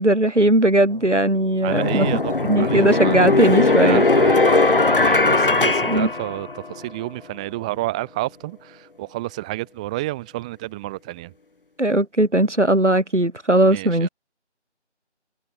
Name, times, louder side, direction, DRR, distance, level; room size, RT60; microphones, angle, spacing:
voice 1, 0.0-2.1 2.5-4.0 5.9-6.1 11.8-14.1, right 1 dB, 85° right, 3.3 m, -18 dB
sound 1, 0.9-1.0 1.7-6.8, left 3 dB, 50° left, 1.6 m, -19 dB
voice 2, 1.6-11.3 13.6-14.1, right 19 dB, 5° right, 2.4 m, -30 dB
figure-of-eight pair, 165°, 35 cm